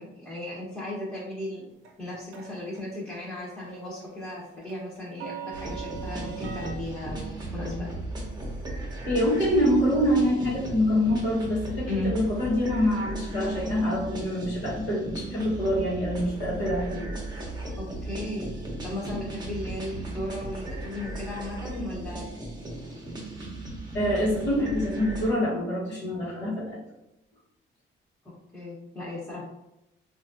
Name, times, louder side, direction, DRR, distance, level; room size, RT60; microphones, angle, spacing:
voice 1, 0.0-1.6 2.0-7.9 11.9-12.1 17.8-18.5 18.8-22.3 28.5-29.4, left 1 dB, 10° left, -8 dB, 1.0 m, -35 dB
sound 1, 1.8-2.8 3.1-3.4 3.7-6.7, right 8 dB, 75° right, 0.5 m, -40 dB
sound 2, 5.5-25.3, right 1 dB, 20° right, 0.9 m, -36 dB
voice 2, 9.1-17.1 23.9-26.6, equal, 65° left, -7 dB, 1.1 m, -25 dB
3.2 x 2.4 x 2.6 m, 0.90 s
cardioid pair, 90°, 20 cm